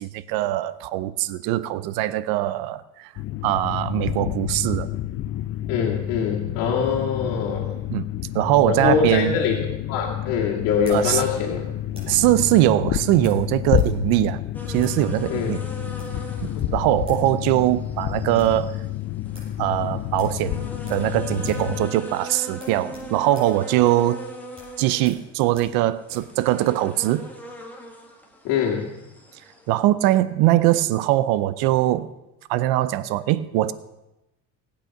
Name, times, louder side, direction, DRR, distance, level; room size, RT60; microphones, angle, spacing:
voice 1, 0.0-3.1 3.4-4.9 7.9-8.1 8.3-9.4 10.9-11.2 12.1-14.4 14.7-15.6 16.4-18.7 19.6-24.2 24.8-27.3 29.7-32.1 32.5-33.7, right 14 dB, 75° right, 16 dB, 0.7 m, -21 dB
sound 1, 3.2-21.9, left 13 dB, 40° left, 0.5 m, -29 dB
voice 2, 5.7-7.8 8.7-11.7 15.3-15.6 16.5-16.7 28.4-28.9, left 6 dB, 75° left, -4 dB, 2.3 m, -24 dB
sound 2, 9.5-12.3 13.2-14.0 14.2-14.3 14.7-15.0 15.8-16.2 16.8-16.9 17.0-17.3 17.6-17.7 18.0-18.6 19.0-19.1 19.3-19.6 20.1-21.1 21.4-21.7 22.0-22.1 22.5-26.3, equal, 15° right, 6.9 m, -47 dB
sound 3, 14.5-29.8, equal, 5° left, 1.7 m, -40 dB
18.0 x 8.7 x 5.9 m, 0.97 s
cardioid pair, 155°, 36 cm